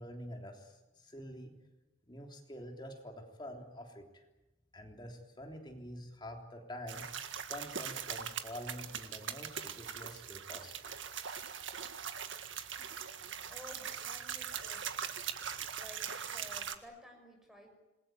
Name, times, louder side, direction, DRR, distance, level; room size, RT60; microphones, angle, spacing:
voice 1, 0.0-1.5 2.1-4.2 4.7-7.0 7.5-10.9, equal, 20° left, 2 dB, 3.4 m, -47 dB
sound 1, 6.9-16.8, right 8 dB, 70° right, 1.8 m, -41 dB
voice 2, 13.5-15.1 15.8-17.7, left 1 dB, ahead, 3 dB, 5.9 m, -54 dB
27.5 x 21.5 x 9.2 m, 1.1 s
head